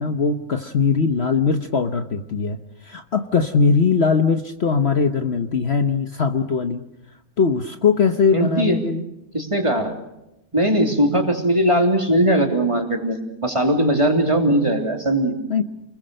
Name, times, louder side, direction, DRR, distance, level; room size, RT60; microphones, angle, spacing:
voice 1, 0.0-6.9 7.4-9.0 15.5-15.6, left 5 dB, 50° left, 7 dB, 1.2 m, -20 dB
voice 2, 8.3-8.8 9.3-9.9 10.5-15.3, right 1 dB, 20° right, 3 dB, 3.3 m, -19 dB
29.0 x 21.5 x 6.6 m, 0.91 s
omnidirectional pair, 1.5 m